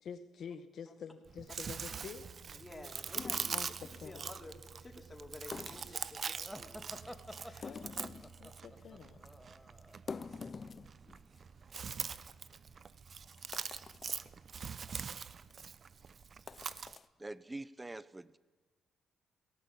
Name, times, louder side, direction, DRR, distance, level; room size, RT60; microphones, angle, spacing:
voice 1, 0.0-2.3 3.5-4.3 7.6-8.1 8.4-9.2 12.1-12.2, left 7 dB, 60° left, 9 dB, 1.3 m, -48 dB
Chewing mastication, 1.3-17.0, right 6 dB, 45° right, 0.8 m, -43 dB
voice 2, 2.5-3.6 4.0-6.7 7.4-7.8, left 2 dB, 20° left, 3 dB, 3.5 m, -52 dB
sound 1, 3.1-4.1 5.4-6.1 6.6-7.1 7.5-8.4 8.8-8.9 9.3-9.4 9.8-11.4 11.7-11.8 12.1-12.2 12.8-12.9 13.3-14.3 14.8-15.0 15.5-15.7 16.3-17.1, left 5 dB, 40° left, 0.6 m, -47 dB
sound 2, 6.4-10.1, equal, ahead, 1.5 m, -50 dB
voice 3, 17.2-18.4, right 2 dB, 15° right, 18 dB, 0.8 m, -45 dB
18.0 x 17.5 x 8.5 m, 1.3 s
cardioid pair, 90°, 0 cm